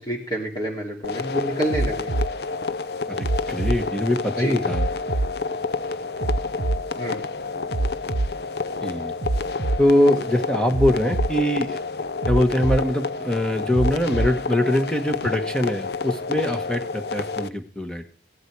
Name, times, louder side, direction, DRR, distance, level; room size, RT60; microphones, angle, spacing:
voice 1, 0.0-2.1 4.4-4.6 7.0-7.2, right 1 dB, 25° left, -2 dB, 2.9 m, -28 dB
sound 1, 1.0-17.5, left 4 dB, 65° left, 0.7 m, -29 dB
sound 2, 1.7-2.3 3.2-3.8 4.7-5.3 6.2-6.8 7.7-8.3 9.2-9.8 10.7-11.3 12.2-12.8 13.7-14.3 15.2-15.3, right 2 dB, 55° right, 0.6 m, -24 dB
voice 2, 3.1-4.9 8.8-9.1 9.8-11.8 12.3-18.0, left 1 dB, 5° left, 6 dB, 1.4 m, -23 dB
16.5 x 12.0 x 4.8 m, 0.38 s
head